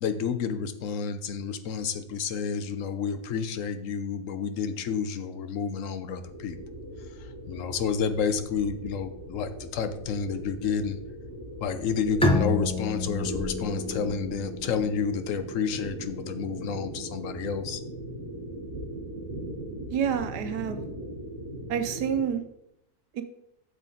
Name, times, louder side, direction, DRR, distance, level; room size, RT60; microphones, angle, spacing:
voice 1, 0.0-6.6 7.2-11.0 11.6-17.8, left 6 dB, 60° left, 10 dB, 1.0 m, -30 dB
sound 1, 6.2-22.3, right 1 dB, 15° right, 3.8 m, -39 dB
Bowed string instrument, 12.2-15.7, left 2 dB, 5° left, 0.5 m, -30 dB
voice 2, 19.9-20.8 21.7-22.4 23.1-23.2, right 8 dB, 85° right, 8 dB, 1.4 m, -28 dB
8.2 x 6.7 x 3.9 m, 0.79 s
omnidirectional pair, 1.7 m